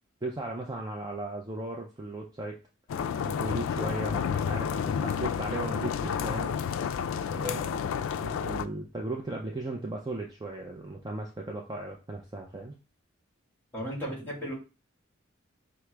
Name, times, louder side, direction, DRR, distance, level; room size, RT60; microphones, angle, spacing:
voice 1, 0.2-2.5 3.2-6.6 7.3-7.6 8.2-12.7, right 2 dB, 20° right, 1 dB, 0.4 m, -36 dB
sound 1, 2.9-8.7, left 7 dB, 80° left, 0.3 m, -30 dB
voice 2, 7.4-7.9 13.7-14.5, equal, 10° left, -3 dB, 1.7 m, -36 dB
5.9 x 2.0 x 3.3 m, 0.32 s
head